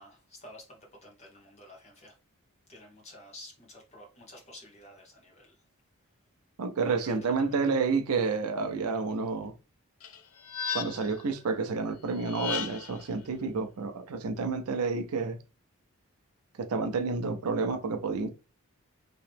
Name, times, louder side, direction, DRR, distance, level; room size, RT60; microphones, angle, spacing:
voice 1, 0.0-2.1 2.7-5.5 6.9-7.8, left 1 dB, 30° left, 1.1 m, -51 dB
voice 2, 6.6-9.5 10.7-15.4 16.6-18.3, right 4 dB, 85° right, 0.5 m, -30 dB
sound 1, 10.0-11.2 12.2-13.0, left 7 dB, 70° left, 0.5 m, -35 dB
3.0 x 2.8 x 3.4 m
head